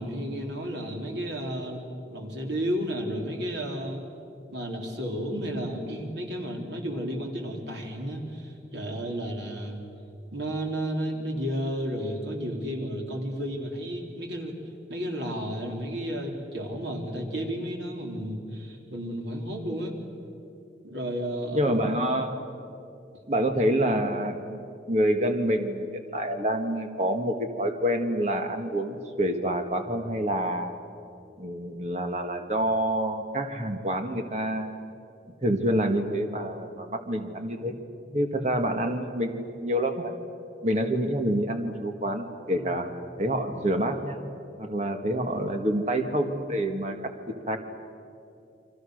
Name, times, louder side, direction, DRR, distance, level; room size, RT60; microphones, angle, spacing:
voice 1, 0.0-1.8 2.1-4.1 4.5-9.8 10.3-14.5 14.9-19.9 20.8-21.7 42.5-42.8, equal, 80° right, 1 dB, 3.9 m, -32 dB
voice 2, 21.5-22.4 23.3-30.7 31.4-34.8 35.4-37.8 38.1-40.1 40.6-42.9 43.2-44.2 44.6-47.6, equal, 40° right, 5 dB, 1.7 m, -27 dB
29.5 x 24.0 x 6.6 m, 2.6 s
head